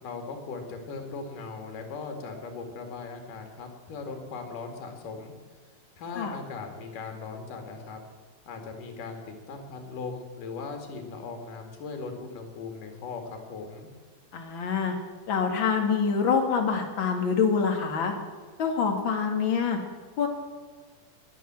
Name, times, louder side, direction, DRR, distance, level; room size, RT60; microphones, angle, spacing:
voice 1, 0.0-5.3 6.0-8.0 8.5-13.9, left 4 dB, 85° left, 5 dB, 3.7 m, -39 dB
voice 2, 14.3-15.0 15.3-18.1 18.6-19.8 20.2-20.3, left 6 dB, 45° left, 4 dB, 2.3 m, -25 dB
21.0 x 8.5 x 7.6 m, 1.5 s
omnidirectional pair, 3.6 m